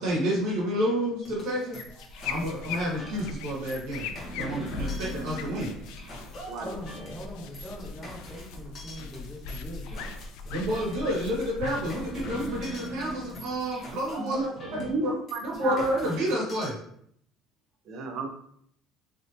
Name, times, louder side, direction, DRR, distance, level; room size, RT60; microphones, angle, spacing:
voice 1, 0.0-1.8 2.3-5.8 10.5-15.1 15.4-16.8, equal, 75° right, -4 dB, 1.4 m, -29 dB
sound 1, 1.2-16.7, equal, 35° left, 0.8 m, -42 dB
sound 2, 1.7-13.7, left 5 dB, 80° left, 0.3 m, -40 dB
voice 2, 1.9-2.5 6.6-10.1, equal, 5° right, -4 dB, 0.9 m, -43 dB
voice 3, 14.2-15.8 17.9-18.3, right 3 dB, 45° right, 4 dB, 0.5 m, -33 dB
3.3 x 2.7 x 2.7 m, 0.66 s
cardioid pair, 155°, 0 cm